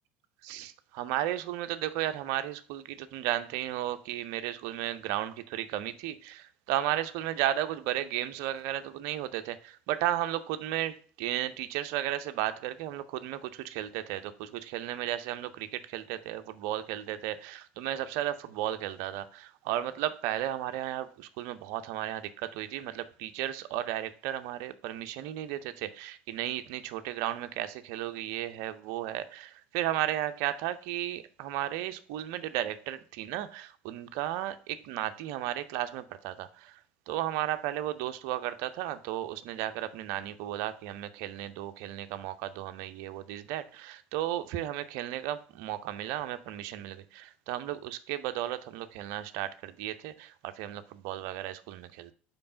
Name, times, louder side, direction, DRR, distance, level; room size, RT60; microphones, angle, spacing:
voice 1, 0.4-36.8 37.1-52.1, right 13 dB, 55° right, 0.6 m, -34 dB
5.3 x 4.6 x 5.7 m
figure-of-eight pair, 70°, 7 cm